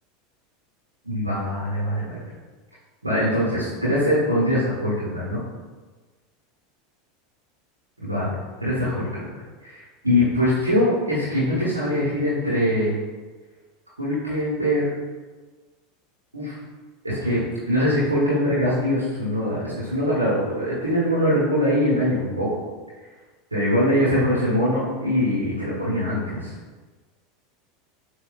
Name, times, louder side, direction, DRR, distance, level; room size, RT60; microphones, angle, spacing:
voice 1, 1.0-2.2 3.0-5.4 8.0-8.3 8.6-9.3 9.6-12.9 14.0-14.9 16.3-16.6 17.0-22.5 23.5-26.5, equal, 85° right, -9 dB, 1.1 m, -22 dB
7.0 x 2.6 x 2.3 m, 1.3 s
figure-of-eight pair, 80°, 0 cm